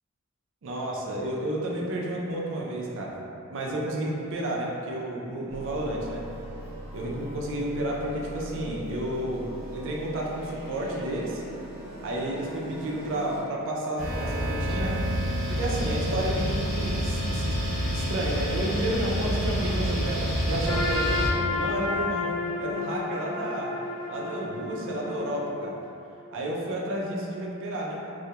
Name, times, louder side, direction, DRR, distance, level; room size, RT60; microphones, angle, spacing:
voice 1, 0.6-3.2 3.5-6.2 6.9-11.4 12.0-15.2 15.5-17.6 17.9-22.3 22.6-23.7 24.1-25.8 26.3-28.1, right 1 dB, 60° right, -3 dB, 0.4 m, -31 dB
sound 1, 5.5-13.4, right 1 dB, 45° right, 0.8 m, -41 dB
sound 2, 14.0-21.3, equal, ahead, 0.6 m, -28 dB
Trumpet, 20.7-25.7, left 4 dB, 80° left, 0.4 m, -31 dB
2.2 x 2.1 x 2.7 m, 2.7 s
head